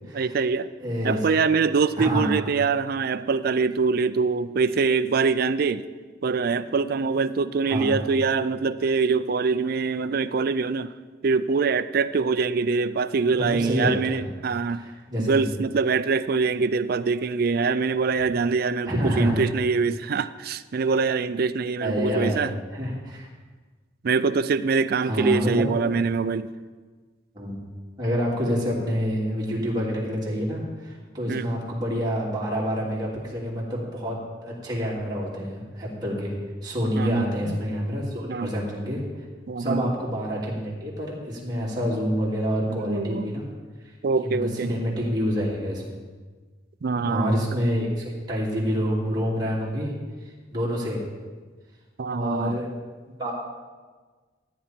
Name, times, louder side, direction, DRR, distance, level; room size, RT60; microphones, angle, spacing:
voice 1, 0.1-0.7 1.0-5.9 6.2-10.9 11.2-14.8 15.2-22.5 24.0-26.5 31.3-31.5 37.0-37.6 38.3-38.5 39.5-39.9 42.7-43.3 44.0-44.7 46.8-47.4 52.0-52.6, right 4 dB, 55° right, 13 dB, 0.4 m, -24 dB
voice 2, 0.8-1.2 2.0-2.4 7.7-8.0 13.3-14.2 14.7-15.4 18.9-19.4 21.8-23.3 25.0-25.6 27.3-27.6 28.0-36.3 36.6-39.0 39.6-43.5 44.2-46.0 47.0-49.9 50.2-51.1 52.1-52.7 53.1-53.3, equal, 20° right, -6 dB, 2.9 m, -27 dB
14.0 x 9.2 x 4.5 m, 1.4 s
head